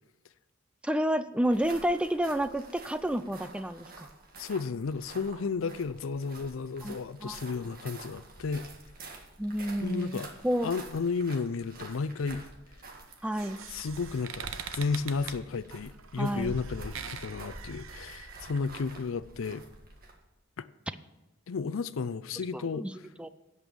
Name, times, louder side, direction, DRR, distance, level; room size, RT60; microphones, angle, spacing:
voice 1, 0.8-4.1 6.8-7.4 9.4-10.7 13.2-13.6 16.2-16.5 22.5-22.9 23.2-23.3, equal, 5° right, 0.4 m, -30 dB
sound 1, 1.4-20.3, right 2 dB, 45° right, 1.7 m, -48 dB
voice 2, 4.4-8.6 9.8-10.3 10.6-12.4 13.7-19.6 20.6-20.7 21.5-22.9, left 4 dB, 70° left, 0.5 m, -33 dB
sound 2, 13.1-18.7, right 8 dB, 80° right, 0.8 m, -44 dB
16.5 x 5.5 x 6.9 m
head